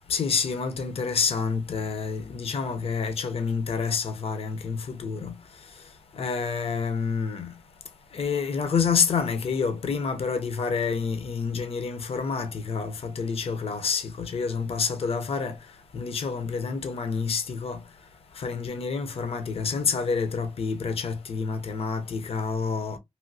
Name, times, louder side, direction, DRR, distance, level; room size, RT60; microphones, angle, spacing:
voice 1, 0.1-5.3 6.2-7.5 8.1-15.5 15.9-17.8 18.4-23.0, left 5 dB, 65° left, 0.5 m, -28 dB
3.1 x 2.6 x 2.6 m
wide cardioid pair, 120°, 11 cm